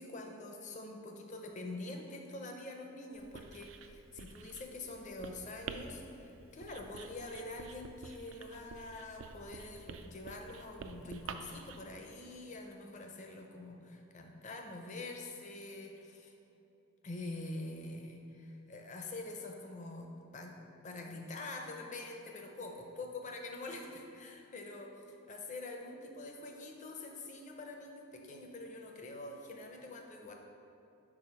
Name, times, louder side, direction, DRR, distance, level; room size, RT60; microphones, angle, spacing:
voice 1, 0.0-16.3 17.0-20.6 20.8-30.3, left 2 dB, 35° left, 2 dB, 0.6 m, -45 dB
Writing, 3.1-11.8, right 5 dB, 65° right, 0.3 m, -49 dB
4.9 x 4.3 x 5.5 m, 2.9 s
head